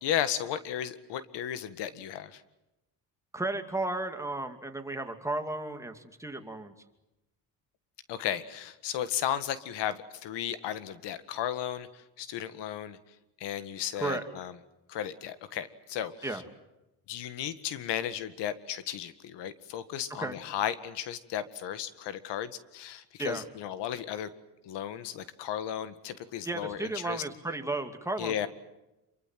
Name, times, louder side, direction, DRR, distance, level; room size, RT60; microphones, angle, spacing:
voice 1, 0.0-2.4 8.1-13.0 13.4-14.5 14.9-16.4 17.1-24.3 24.6-27.2 28.2-28.5, left 10 dB, 85° left, 13 dB, 1.9 m, -34 dB
voice 2, 3.3-6.7 14.0-14.3 16.2-16.4 20.2-20.4 23.2-23.4 26.4-28.5, right 2 dB, 5° right, 5 dB, 2.7 m, -34 dB
27.5 x 24.0 x 7.7 m, 0.96 s
cardioid pair, 125°, 41 cm